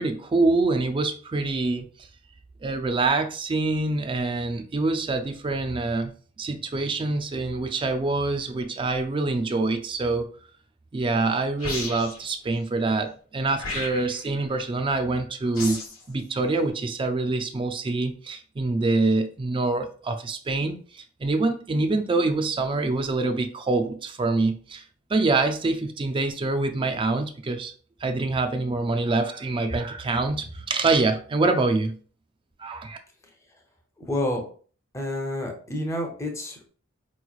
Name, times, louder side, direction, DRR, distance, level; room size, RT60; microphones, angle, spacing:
voice 1, 0.0-1.9 2.6-6.1 6.4-10.3 10.9-15.8 16.1-24.8 25.1-27.7 28.0-31.9 32.6-33.0, right 3 dB, 25° right, 6 dB, 0.3 m, -25 dB
sound 1, 11.6-12.3 13.6-14.3 15.5-16.0, left 3 dB, 75° left, 1.1 m, -33 dB
voice 2, 34.0-34.4 34.9-36.7, left 1 dB, 15° left, 2 dB, 0.7 m, -29 dB
4.5 x 3.0 x 2.4 m, 0.43 s
head